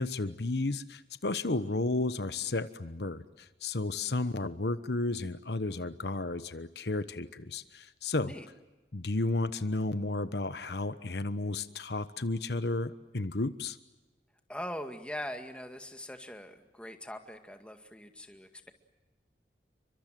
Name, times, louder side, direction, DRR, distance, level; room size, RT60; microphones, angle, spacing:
voice 1, 0.0-8.3 8.9-13.8, left 2 dB, 70° left, 12 dB, 1.1 m, -33 dB
voice 2, 14.5-18.7, equal, 5° left, 5 dB, 2.1 m, -42 dB
29.5 x 24.5 x 7.7 m, 1.1 s
head